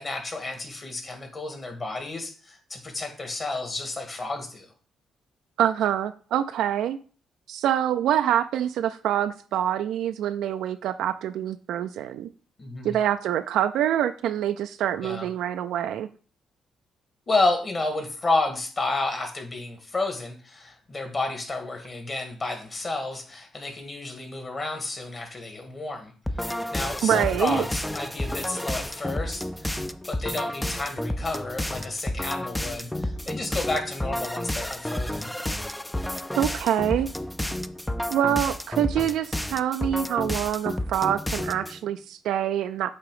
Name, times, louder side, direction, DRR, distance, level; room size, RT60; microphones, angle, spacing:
voice 1, 0.0-4.7 12.6-13.0 15.0-15.3 17.3-35.3, left 2 dB, 35° left, 4 dB, 1.8 m, -31 dB
voice 2, 5.6-7.0 7.5-12.3 12.8-16.1 27.0-27.6 36.3-37.1 38.1-42.9, right 10 dB, 80° right, 8 dB, 0.3 m, -25 dB
sound 1, 26.3-41.8, left 1 dB, 5° left, 0.4 m, -31 dB
8.3 x 3.0 x 4.9 m, 0.40 s
cardioid pair, 90°, 0 cm